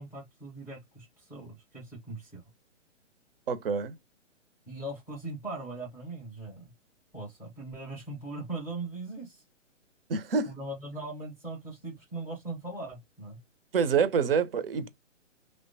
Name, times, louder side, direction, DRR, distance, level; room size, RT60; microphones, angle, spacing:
voice 1, 0.0-2.4 4.7-6.7 7.1-9.4 10.5-13.4, right 2 dB, 5° left, 0.4 m, -40 dB
voice 2, 3.5-4.0 10.1-10.5 13.7-14.9, right 6 dB, 50° right, 0.5 m, -26 dB
3.1 x 2.1 x 2.6 m
figure-of-eight pair, 130°, 38 cm